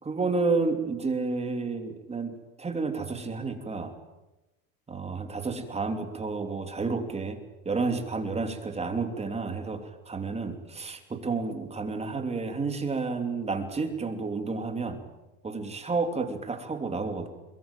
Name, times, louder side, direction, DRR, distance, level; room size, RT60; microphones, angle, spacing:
voice 1, 0.0-3.9 4.9-7.4 7.6-15.0 15.4-17.3, right 4 dB, 15° right, 6 dB, 3.0 m, -30 dB
23.0 x 22.5 x 9.0 m, 1.0 s
supercardioid pair, 130°, 44 cm